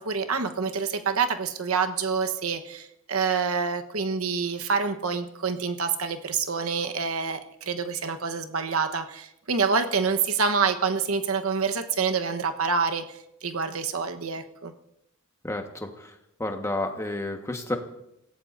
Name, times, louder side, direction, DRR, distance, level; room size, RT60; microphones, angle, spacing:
voice 1, 0.0-14.7, right 5 dB, 80° right, 7 dB, 1.2 m, -27 dB
voice 2, 15.4-17.8, left 2 dB, 15° left, 4 dB, 1.4 m, -31 dB
28.0 x 17.0 x 2.7 m, 0.83 s
head